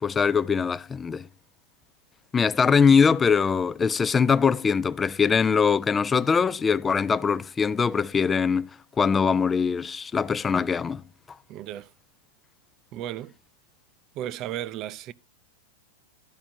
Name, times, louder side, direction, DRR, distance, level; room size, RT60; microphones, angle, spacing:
voice 1, 0.0-1.3 2.3-8.7 9.0-11.0, left 6 dB, 15° left, 0.4 m, -22 dB
voice 2, 11.5-11.9 12.9-13.3 14.1-15.1, right 12 dB, 40° right, 0.5 m, -34 dB
12.0 x 4.9 x 4.3 m
hypercardioid pair, 130°, 0 cm